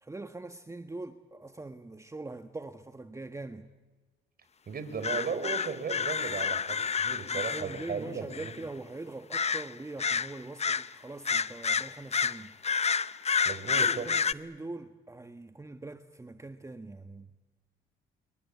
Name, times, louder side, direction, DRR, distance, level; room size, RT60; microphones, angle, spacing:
voice 1, 0.0-3.7 7.3-12.5 13.7-17.3, right 2 dB, 15° right, 1.4 m, -43 dB
voice 2, 4.7-8.5 13.4-14.1, right 5 dB, 50° right, 4.8 m, -36 dB
sound 1, 5.0-8.0 8.3-8.6 9.3-9.7 10.0-10.9 11.3-14.3, left 6 dB, 35° left, 0.8 m, -29 dB
28.5 x 23.5 x 8.4 m
cardioid pair, 90°, 20 cm